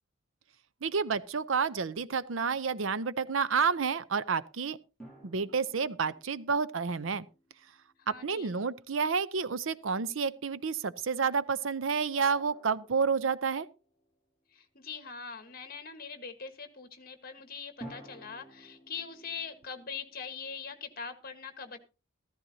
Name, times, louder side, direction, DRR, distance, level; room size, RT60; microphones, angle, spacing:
voice 1, 0.8-4.8 5.2-7.3 8.1-13.7, right 5 dB, 75° right, 0.7 m, -30 dB
sound 1, 5.0-8.3 12.2-14.2 17.8-20.9, right 1 dB, ahead, 6.2 m, -53 dB
voice 2, 8.0-8.5 14.5-21.8, left 5 dB, 45° left, 1.5 m, -42 dB
14.5 x 14.0 x 2.8 m
head